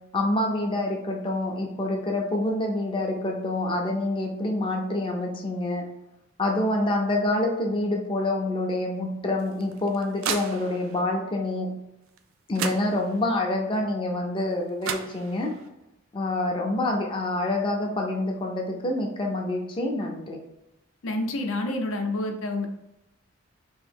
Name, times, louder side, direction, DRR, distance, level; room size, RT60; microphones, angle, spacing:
voice 1, 0.1-5.8 6.4-11.7 12.5-15.5 16.1-20.4, left 1 dB, 25° left, 0 dB, 0.5 m, -27 dB
sound 1, 9.4-11.0 12.2-12.3 12.5-13.4 14.5-14.6 14.8-15.7, right 7 dB, 75° right, 0.4 m, -34 dB
voice 2, 21.0-22.7, left 2 dB, 75° left, 3 dB, 0.6 m, -28 dB
3.0 x 2.6 x 3.4 m, 0.90 s
head